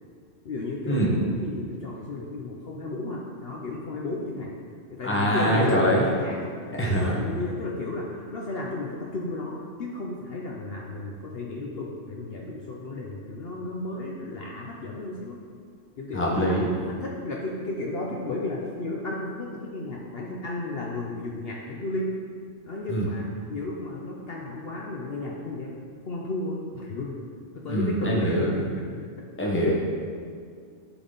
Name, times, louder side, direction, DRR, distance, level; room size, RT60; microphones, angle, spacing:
voice 1, 0.4-4.5 4.9-15.4 16.0-22.1 22.6-25.8 26.0-27.2 27.5-28.8, left 2 dB, 55° left, -3 dB, 0.9 m, -33 dB
voice 2, 5.0-6.1 6.8-7.1 16.1-16.7 22.9-23.1 27.7-28.6 29.4-29.7, equal, 10° left, -4 dB, 1.1 m, -23 dB
11.0 x 4.1 x 3.9 m, 2.1 s
omnidirectional pair, 1.3 m